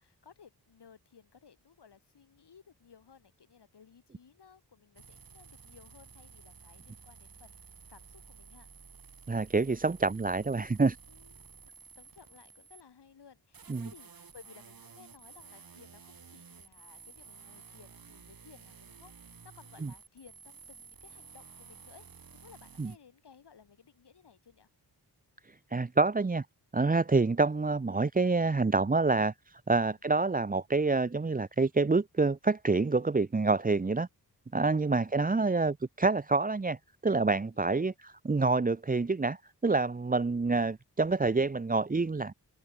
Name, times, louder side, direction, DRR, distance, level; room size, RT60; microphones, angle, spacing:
voice 1, 0.0-7.6 7.9-8.7 11.1-11.4 11.6-11.7 12.0-24.7 35.0-35.2 37.5-37.9, left 6 dB, 90° left, 5.9 m, -58 dB
sound 1, 5.0-12.8 13.5-23.0, right 6 dB, 60° right, 2.8 m, -53 dB
voice 2, 9.3-11.0 13.7-13.9 19.8-19.9 22.8-22.9 25.7-26.4 26.7-34.1 34.5-36.8 37.0-39.4 39.6-42.3, right 3 dB, 20° right, 0.8 m, -27 dB
open air
wide cardioid pair, 125°, 40 cm